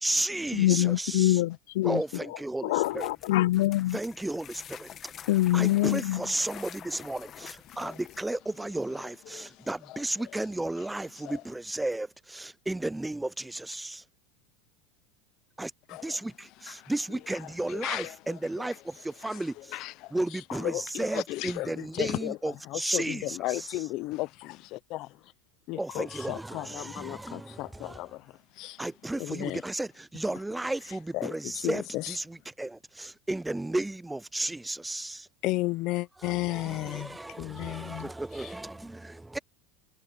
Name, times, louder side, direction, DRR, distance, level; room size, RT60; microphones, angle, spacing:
voice 1, 0.0-1.4 1.8-3.1 3.9-5.1 5.5-14.0 15.6-19.8 20.1-23.7 25.8-28.0 28.8-35.3 36.2-39.4, right 2 dB, 5° right, 0.3 m, -34 dB
voice 2, 0.5-2.0 2.6-4.0 5.3-6.2, left 16 dB, 75° left, 0.4 m, -24 dB
sound 1, 2.8-8.4, left 9 dB, 30° left, 1.4 m, -47 dB
voice 3, 7.7-8.0 9.3-10.0 11.2-11.4 15.9-16.2 16.7-16.8 17.7-18.2 18.6-18.7 19.2-19.4 19.7-20.1 20.5-25.2 25.7-28.3 28.6-28.8 29.2-29.6 31.1-32.2 35.4-38.1 38.4-38.5, left 19 dB, 45° left, 0.8 m, -34 dB
supercardioid pair, 155°, 0 cm